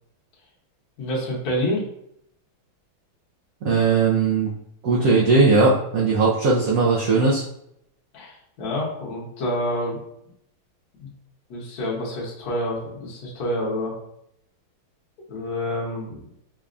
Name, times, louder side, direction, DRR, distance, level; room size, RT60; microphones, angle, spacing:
voice 1, 1.0-1.9 8.1-10.0 11.0-11.1 11.5-13.9 15.3-16.3, left 1 dB, 55° left, -5 dB, 1.3 m, -28 dB
voice 2, 3.6-4.5 4.8-7.4, right 4 dB, 90° right, -5 dB, 0.7 m, -18 dB
4.9 x 2.3 x 2.5 m, 0.74 s
omnidirectional pair, 2.3 m